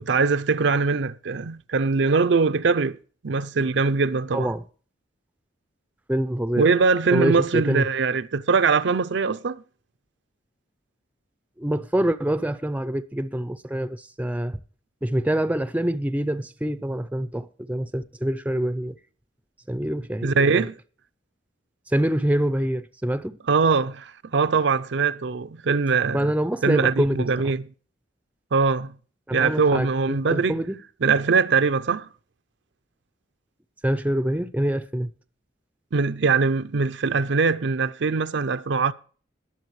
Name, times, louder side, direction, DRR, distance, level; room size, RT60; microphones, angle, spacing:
voice 1, 0.0-3.0 3.2-4.5 6.6-9.6 20.2-20.7 23.5-26.3 26.6-27.7 28.5-28.9 29.3-30.6 31.0-32.1 35.9-38.9, right 4 dB, 60° right, 0.5 m, -22 dB
voice 2, 4.3-4.6 6.1-6.7 7.1-7.9 11.6-14.6 15.0-18.9 19.7-20.7 21.9-23.4 26.1-27.2 29.3-30.8 33.8-35.1, right 1 dB, 10° right, 0.5 m, -25 dB
21.0 x 7.2 x 3.1 m
head